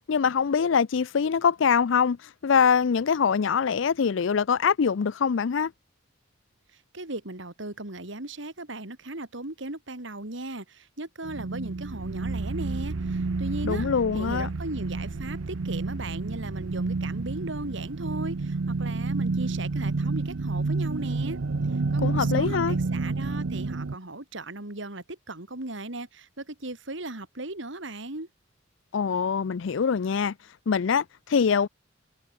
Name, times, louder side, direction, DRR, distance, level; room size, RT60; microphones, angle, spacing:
voice 1, 0.1-2.2 2.4-5.7 13.6-14.5 22.0-22.8 28.9-30.3 30.7-31.7, left 6 dB, 65° left, 0.4 m, -23 dB
voice 2, 6.9-13.9 14.1-21.4 21.9-28.3, right 2 dB, 65° right, 2.9 m, -37 dB
sound 1, 11.2-24.0, right 3 dB, 80° right, 0.7 m, -29 dB
head